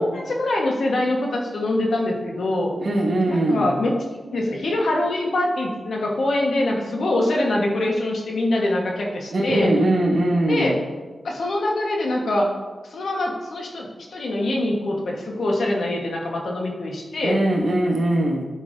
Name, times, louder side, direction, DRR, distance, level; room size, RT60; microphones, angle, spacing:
voice 1, 0.0-2.7 3.3-3.9 4.3-9.7 10.5-10.8 11.2-12.5 12.9-17.4, left 1 dB, 80° left, -1 dB, 1.3 m, -24 dB
voice 2, 2.8-3.7 9.3-10.7 17.2-18.4, right 1 dB, 65° right, -4 dB, 1.7 m, -21 dB
11.0 x 5.5 x 2.7 m, 1.3 s
wide cardioid pair, 90°, 0 cm